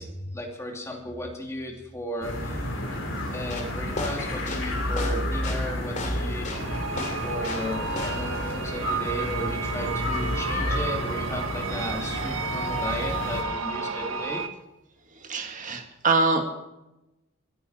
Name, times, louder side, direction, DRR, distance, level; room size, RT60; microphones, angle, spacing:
voice 1, 0.0-2.8 3.3-6.6 6.9-14.4, left 1 dB, 15° left, 1 dB, 2.7 m, -35 dB
sound 1, 2.2-13.4, left 1 dB, 65° left, 3.5 m, -31 dB
sound 2, 3.5-7.7 8.0-8.3, left 3 dB, 40° left, 2.7 m, -34 dB
sound 3, 6.5-14.5, right 5 dB, 80° right, 1.3 m, -32 dB
voice 2, 15.1-16.4, right 3 dB, 40° right, 4 dB, 2.0 m, -24 dB
27.0 x 10.0 x 4.4 m, 0.96 s
head